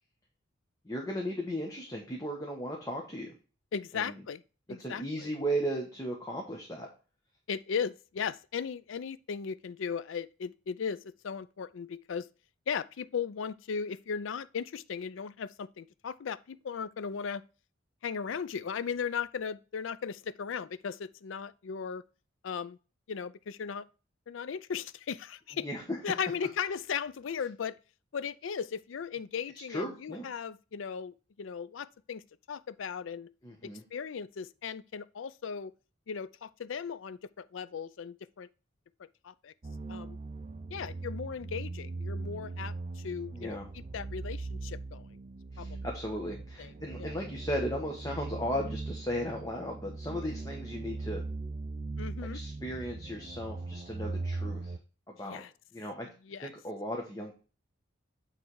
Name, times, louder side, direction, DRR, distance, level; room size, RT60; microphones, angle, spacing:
voice 1, 0.8-3.3 3.9-4.2 4.8-6.9 25.6-26.0 29.7-30.2 33.4-33.8 43.3-43.7 45.5-51.2 52.3-54.7 55.1-55.4 55.7-56.1 56.4-57.3, equal, 15° left, 1.1 m, -36 dB
voice 2, 3.7-4.4 4.7-5.3 7.5-12.3 12.7-17.4 18.0-22.0 22.4-22.8 23.1-23.8 24.3-25.7 26.0-27.8 28.1-32.2 32.5-33.3 33.9-35.7 36.1-38.5 39.2-39.5 39.9-40.2 40.7-45.1 45.6-45.8 46.6-46.7 47.0-47.1 52.0-52.4 55.2-55.5 56.3-56.5, left 6 dB, 70° left, 0.4 m, -37 dB
sound 1, 39.6-54.8, right 3 dB, 30° right, 0.4 m, -39 dB
8.5 x 3.4 x 4.7 m
head